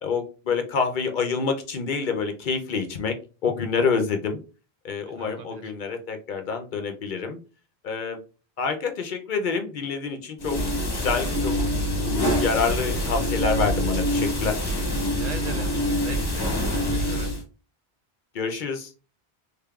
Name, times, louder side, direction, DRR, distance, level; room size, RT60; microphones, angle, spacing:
voice 1, 0.0-3.1 3.4-4.4 4.8-7.4 7.8-8.2 8.6-10.6 10.9-11.6 12.0-14.6 18.3-18.9, left 5 dB, 60° left, 5 dB, 0.7 m, -27 dB
voice 2, 5.1-5.7 15.2-17.3, right 5 dB, 55° right, 7 dB, 0.5 m, -39 dB
sound 1, 10.4-17.4, equal, 25° left, 0.9 m, -25 dB
3.6 x 3.4 x 2.2 m, 0.34 s
omnidirectional pair, 1.0 m